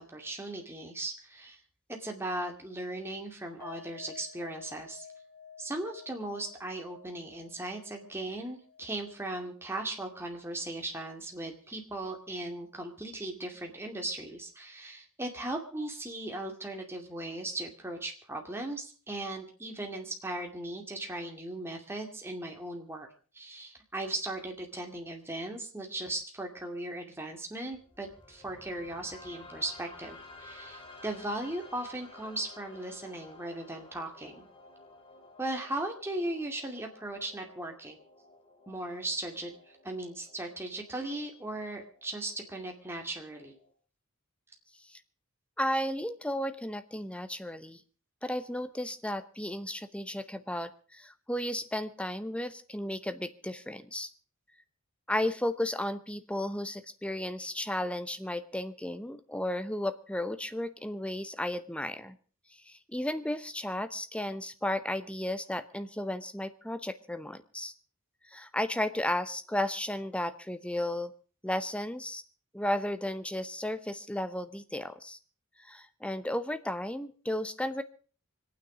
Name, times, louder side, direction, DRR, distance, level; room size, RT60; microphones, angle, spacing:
voice 1, 0.0-1.6 1.9-5.0 5.6-23.1 23.3-34.5 35.4-38.0 38.7-39.5 39.8-43.6, right 2 dB, 10° right, 2 dB, 2.3 m, -38 dB
sound 1, 3.6-10.8 11.1-11.3 11.6-11.7, left 6 dB, 40° left, 7.0 m, -53 dB
sound 2, 27.7-43.7, left 2 dB, 25° left, 2.5 m, -54 dB
voice 2, 45.6-47.8 48.2-54.1 55.1-62.2 62.6-67.7 68.3-71.1 71.4-72.2 72.5-75.2 75.6-77.8, left 1 dB, 5° left, 10 dB, 0.8 m, -34 dB
25.5 x 9.4 x 5.0 m, 0.39 s
head